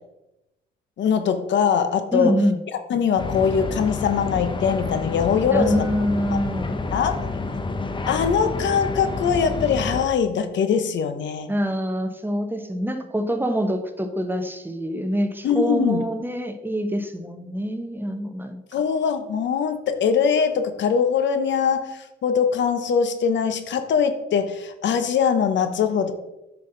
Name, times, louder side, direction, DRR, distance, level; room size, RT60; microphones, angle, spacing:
voice 1, 1.0-2.3 2.9-5.8 6.3-6.4 6.9-7.2 8.1-11.5 15.4-16.0 18.7-26.1, left 7 dB, 65° left, 9 dB, 1.0 m, -22 dB
voice 2, 2.1-2.6 5.5-6.8 11.5-18.6, equal, 10° right, 7 dB, 1.0 m, -25 dB
sound 1, 3.2-10.1, left 3 dB, 25° left, 0.9 m, -29 dB
9.3 x 5.7 x 4.0 m, 0.94 s
cardioid pair, 90°, 20 cm